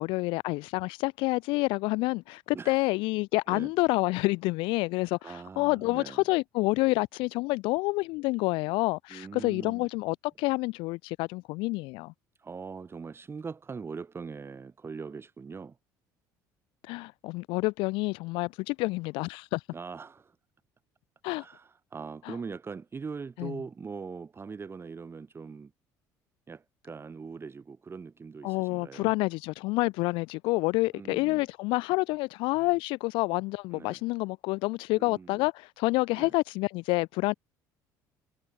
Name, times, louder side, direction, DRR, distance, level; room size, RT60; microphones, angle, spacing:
voice 1, 0.0-12.1 16.9-19.6 21.2-21.4 22.3-22.4 23.4-23.6 28.4-37.3, left 23 dB, 75° left, 0.5 m, -28 dB
voice 2, 2.5-2.9 3.5-3.7 5.2-6.2 9.1-9.9 12.4-15.8 19.7-20.4 21.3-25.7 26.5-29.1 30.9-31.5 33.7-34.0 35.0-35.4 36.1-36.3, right 5 dB, 25° right, 0.9 m, -41 dB
hypercardioid pair, 70°, 9 cm